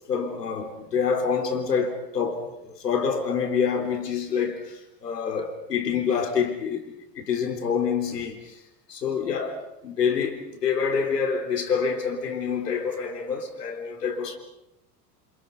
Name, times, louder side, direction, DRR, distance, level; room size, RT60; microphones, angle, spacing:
voice 1, 0.1-8.6 8.9-14.4, left 6 dB, 85° left, 4.0 m, -27 dB
28.5 x 28.0 x 5.5 m
hypercardioid pair, 85°, 47 cm